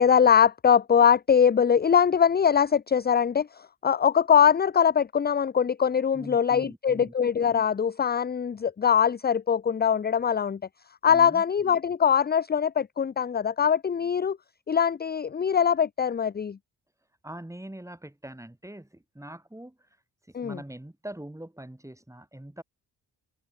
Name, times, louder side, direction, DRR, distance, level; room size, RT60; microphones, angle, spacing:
voice 1, 0.0-10.6 11.0-14.4 14.7-16.6 20.3-20.6, left 7 dB, 25° left, 0.5 m, -22 dB
voice 2, 6.1-7.1 11.1-11.4 17.2-19.8 20.3-22.6, right 1 dB, 5° right, 3.8 m, -42 dB
cardioid pair, 90°, 42 cm